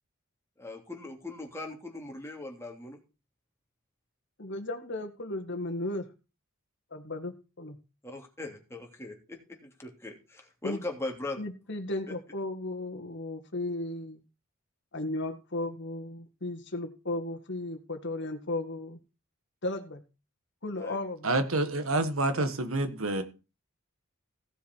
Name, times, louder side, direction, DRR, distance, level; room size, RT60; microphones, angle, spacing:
voice 1, 0.6-3.0 8.0-11.5 12.1-12.2 20.8-21.0 22.3-22.4, left 2 dB, 15° left, 3.0 m, -40 dB
voice 2, 4.4-6.1 6.9-7.8 10.6-10.8 11.4-14.2 14.9-19.0 19.6-20.0 20.6-21.3, left 2 dB, 60° left, 1.8 m, -35 dB
voice 3, 21.2-23.2, right 2 dB, 80° right, 1.7 m, -28 dB
16.5 x 7.1 x 4.7 m
head